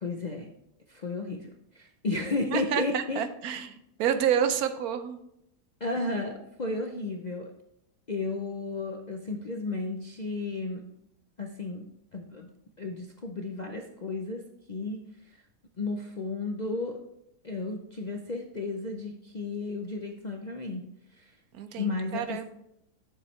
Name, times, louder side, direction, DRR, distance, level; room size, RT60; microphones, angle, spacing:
voice 1, 0.0-0.5 0.9-3.2 5.8-7.5 8.1-10.8 11.4-11.9 12.1-12.5 12.8-14.4 14.7-15.0 15.3-15.4 15.8-17.0 17.4-20.8 21.1-21.3 21.8-22.4, left 3 dB, 45° left, 1 dB, 0.5 m, -33 dB
voice 2, 2.5-5.2 21.5-22.4, right 8 dB, 75° right, 9 dB, 1.1 m, -29 dB
9.8 x 7.3 x 3.2 m, 0.80 s
omnidirectional pair, 1.7 m